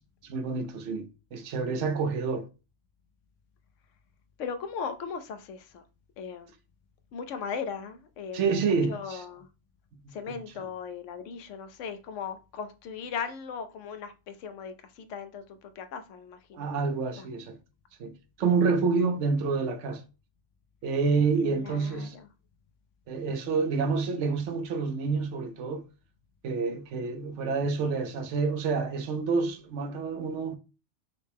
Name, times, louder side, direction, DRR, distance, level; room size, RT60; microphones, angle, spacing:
voice 1, 0.2-2.5 8.3-9.2 10.0-10.4 16.5-17.6 18.0-20.0 20.8-22.2 23.1-25.8 26.4-30.6, right 4 dB, 80° right, 1.0 m, -28 dB
voice 2, 4.4-5.8 6.2-6.5 7.1-9.5 10.1-16.7 17.1-17.3 21.4-22.3, left 6 dB, 90° left, 1.0 m, -38 dB
5.5 x 2.1 x 3.3 m
omnidirectional pair, 1.2 m